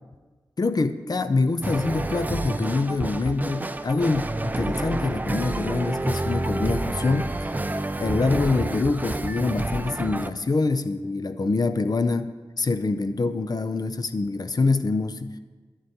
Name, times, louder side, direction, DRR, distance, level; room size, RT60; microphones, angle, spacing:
voice 1, 0.6-7.6 8.0-12.3 12.6-15.3, left 3 dB, 45° left, 11 dB, 0.5 m, -25 dB
sound 1, 1.6-10.3, right 2 dB, 20° right, 0.4 m, -29 dB
11.0 x 9.4 x 2.8 m, 1.4 s
wide cardioid pair, 60°, 9 cm